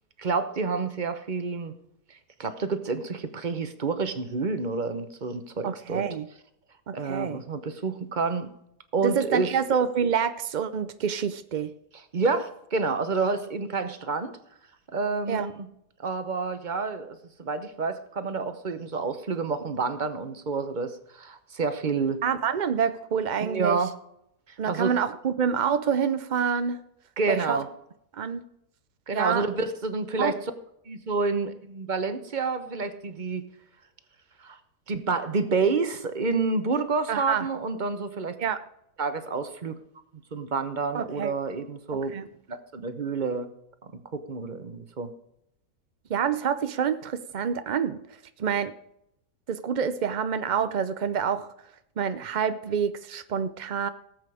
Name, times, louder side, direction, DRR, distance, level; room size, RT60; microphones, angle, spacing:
voice 1, 0.2-1.7 2.4-6.0 6.9-8.5 8.9-9.5 12.1-14.3 14.9-15.7 16.0-22.2 23.4-23.9 24.7-24.9 27.2-27.7 29.1-30.4 30.9-33.4 34.4-34.6 34.9-38.4 39.0-39.8 40.3-42.1 42.5-43.5 43.8-45.1, right 4 dB, 35° right, 10 dB, 1.0 m, -29 dB
voice 2, 5.6-6.3 6.9-7.4 9.0-11.7 15.3-15.5 22.2-23.8 24.6-26.8 27.3-27.6 28.1-28.4 29.1-29.4 30.2-30.3 37.1-37.5 38.4-38.6 40.9-41.3 41.9-42.3 46.1-48.0 48.4-48.7 49.5-51.5 52.0-53.9, right 7 dB, 75° right, 11 dB, 0.4 m, -27 dB
18.0 x 7.9 x 4.9 m, 0.78 s
omnidirectional pair, 1.7 m